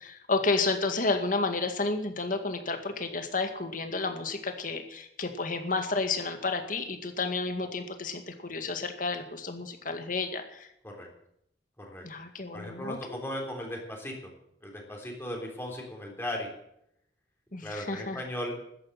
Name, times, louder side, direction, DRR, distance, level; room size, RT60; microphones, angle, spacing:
voice 1, 0.0-10.7 12.0-13.2 17.5-18.2, left 3 dB, 50° left, 7 dB, 2.1 m, -31 dB
voice 2, 12.5-14.1 14.6-16.5 17.6-18.6, left 1 dB, 15° left, 0 dB, 3.6 m, -37 dB
13.5 x 10.0 x 9.1 m, 0.75 s
head